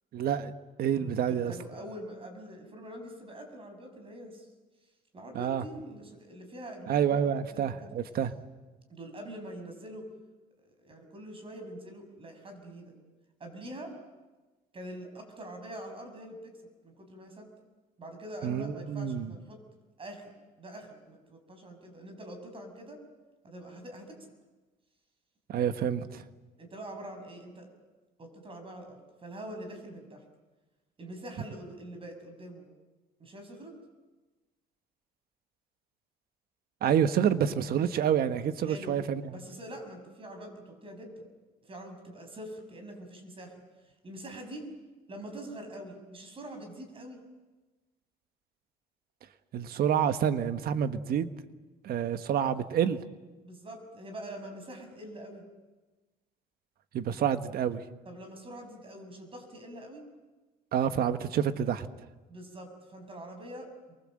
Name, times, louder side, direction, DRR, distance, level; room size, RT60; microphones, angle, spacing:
voice 1, 0.1-0.5 0.8-1.5 5.3-5.6 6.9-8.3 18.4-19.3 25.5-26.2 36.8-39.3 49.5-51.3 51.8-53.0 56.9-57.8 60.7-61.9, right 8 dB, 65° right, 1.4 m, -28 dB
voice 2, 0.9-4.5 5.1-7.7 8.9-10.1 10.6-12.9 13.4-13.9 14.7-16.6 16.8-17.5 18.0-19.6 20.0-23.0 23.4-24.2 26.6-27.7 28.2-30.2 31.0-32.7 33.2-33.7 38.6-39.0 39.3-41.2 41.6-43.5 44.0-44.7 45.1-47.2 53.4-55.4 58.0-60.1 62.3-64.0, right 1 dB, 30° right, 6.6 m, -44 dB
28.0 x 23.5 x 7.8 m
cardioid pair, 110°, 17 cm